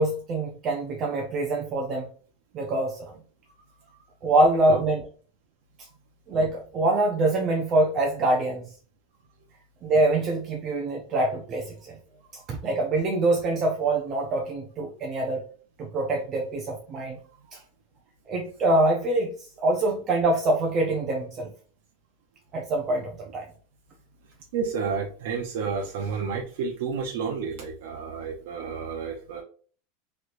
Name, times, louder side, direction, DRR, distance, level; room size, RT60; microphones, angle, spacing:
voice 1, 0.0-2.1 2.5-3.1 4.2-5.1 6.3-8.6 9.8-11.9 12.5-15.4 15.8-17.2 18.3-21.5 22.5-23.4, right 2 dB, 30° right, 0 dB, 0.5 m, -24 dB
voice 2, 4.4-4.8 17.5-17.6 24.5-29.4, right 5 dB, 75° right, -1 dB, 0.6 m, -31 dB
3.1 x 3.0 x 2.5 m, 0.42 s
supercardioid pair, 150°, 0 cm